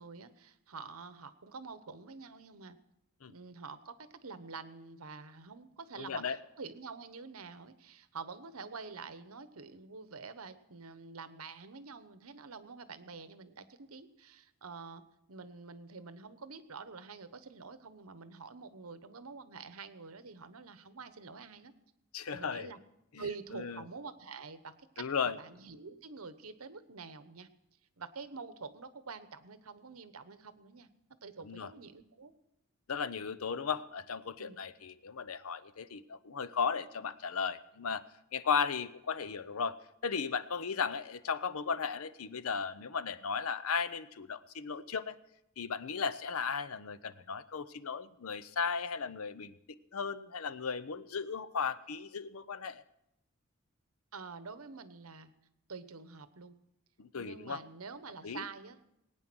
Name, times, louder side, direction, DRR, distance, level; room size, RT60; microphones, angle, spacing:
voice 1, 0.0-2.8 3.3-15.0 15.3-21.7 22.3-22.8 23.2-27.5 28.0-30.9 31.2-32.3 34.4-34.6 54.1-55.3 55.7-56.6 57.1-58.9, right 4 dB, 85° right, 12 dB, 1.0 m, -47 dB
voice 2, 6.0-6.4 22.1-22.7 23.1-23.2 23.5-23.8 25.0-25.4 31.4-31.7 32.9-38.0 38.3-39.8 40.0-45.1 45.6-52.8 57.0-57.6 58.2-58.4, left 6 dB, 85° left, 15 dB, 0.7 m, -36 dB
20.0 x 9.3 x 6.1 m, 0.84 s
head